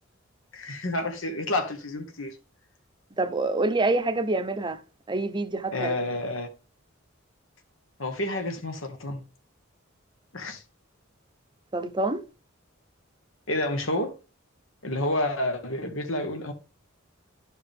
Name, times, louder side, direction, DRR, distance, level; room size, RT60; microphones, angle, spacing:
voice 1, 0.5-2.4 5.7-6.5 8.0-9.2 10.3-10.6 13.5-14.1 14.8-16.5, left 1 dB, 70° left, 1.4 m, -29 dB
voice 2, 3.2-4.8 5.1-5.9 11.7-12.2, right 2 dB, 20° right, 0.8 m, -26 dB
12.0 x 4.8 x 3.5 m
head